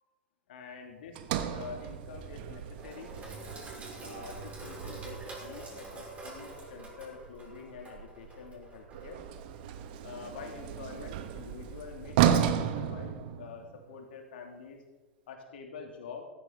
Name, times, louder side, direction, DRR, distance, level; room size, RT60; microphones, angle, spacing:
voice 1, 0.5-3.2 4.0-9.2 10.0-14.8 15.3-16.2, left 5 dB, 65° left, 3 dB, 2.9 m, -46 dB
Sliding door, 1.1-5.4 8.9-13.8, right 9 dB, 55° right, 1.2 m, -33 dB
Sink (filling or washing), 2.7-13.3, right 3 dB, 20° right, 5.7 m, -47 dB
15.0 x 14.0 x 4.0 m, 1.2 s
figure-of-eight pair, 85°, 6 cm